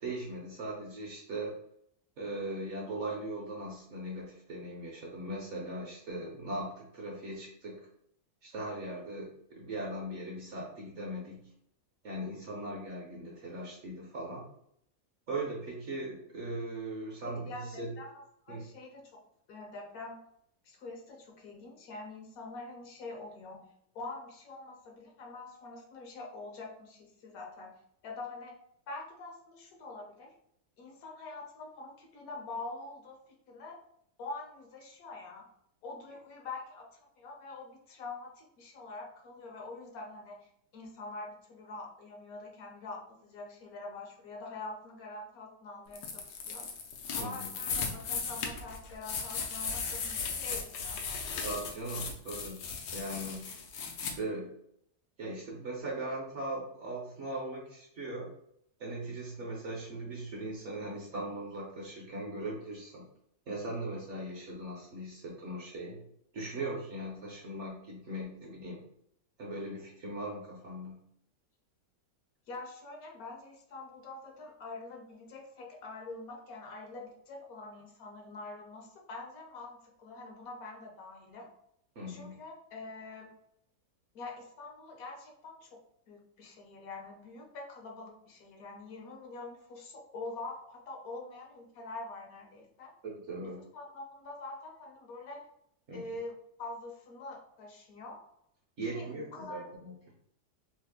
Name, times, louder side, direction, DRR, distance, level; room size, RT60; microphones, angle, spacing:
voice 1, 0.0-1.6 2.2-7.9 8.4-11.5 12.0-14.5 15.3-17.9 18.5-18.6 47.2-47.5 51.4-53.6 54.0-54.5 55.2-58.3 58.8-63.0 63.5-66.0 66.3-68.8 69.4-71.0 82.0-82.4 93.0-93.6 95.9-96.1 98.8-99.9, right 1 dB, 60° right, -3 dB, 0.8 m, -39 dB
voice 2, 17.2-19.2 19.5-20.2 20.6-23.7 23.9-27.8 28.0-28.6 28.9-30.3 30.8-33.2 33.5-33.8 34.2-35.5 35.8-46.7 47.1-51.4 72.5-81.5 82.1-83.3 84.1-85.8 86.1-92.9 93.4-95.4 95.9-98.2 98.9-99.7, left 3 dB, 70° left, 1 dB, 1.0 m, -45 dB
sound 1, 45.9-54.1, left 5 dB, 90° left, 1.2 m, -37 dB
3.2 x 2.0 x 3.4 m, 0.72 s
omnidirectional pair, 1.8 m